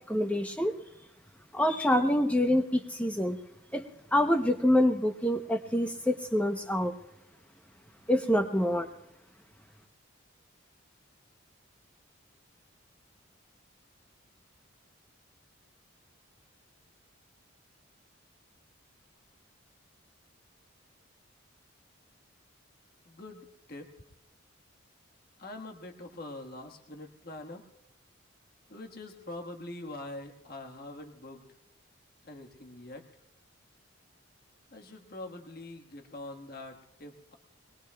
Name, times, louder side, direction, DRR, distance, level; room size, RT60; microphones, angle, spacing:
voice 1, 0.1-0.7 1.5-3.4 3.7-3.8 4.1-6.9 8.1-8.9, left 1 dB, 5° left, 5 dB, 0.8 m, -26 dB
voice 2, 23.0-23.9 25.4-27.6 28.7-31.4 32.2-33.1 34.7-37.4, left 2 dB, 45° left, 3 dB, 1.6 m, -44 dB
22.0 x 21.5 x 2.3 m, 0.88 s
head